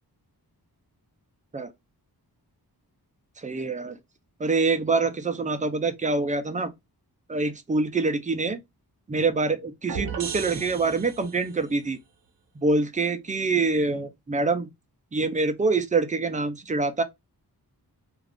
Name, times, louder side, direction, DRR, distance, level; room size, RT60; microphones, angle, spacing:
voice 1, 3.4-4.0 4.4-6.7 7.3-8.6 9.1-12.0 12.6-14.7 15.1-17.0, right 3 dB, 20° right, 0.4 m, -25 dB
sound 1, 9.9-11.6, right 6 dB, 60° right, 0.7 m, -35 dB
2.4 x 2.4 x 3.4 m
wide cardioid pair, 125°, 39 cm